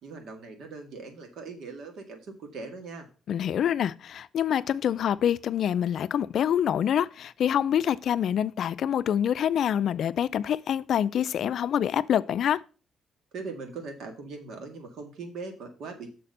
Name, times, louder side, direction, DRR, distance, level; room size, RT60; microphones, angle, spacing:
voice 1, 0.0-3.1 13.3-16.1, right 4 dB, 75° right, 1.9 m, -40 dB
voice 2, 3.3-12.6, left 9 dB, 65° left, 0.4 m, -26 dB
6.7 x 4.2 x 6.6 m
cardioid pair, 90°, 0 cm